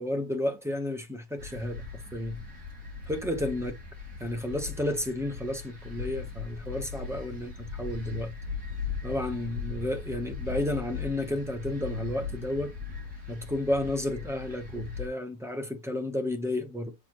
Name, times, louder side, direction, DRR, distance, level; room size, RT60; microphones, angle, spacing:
voice 1, 0.0-2.4 3.1-3.8 4.2-8.3 9.0-12.7 13.3-16.9, left 1 dB, ahead, 0.6 m, -32 dB
sound 1, 1.4-15.1, left 5 dB, 50° right, 3.2 m, -39 dB
7.9 x 4.4 x 3.1 m
omnidirectional pair, 1.9 m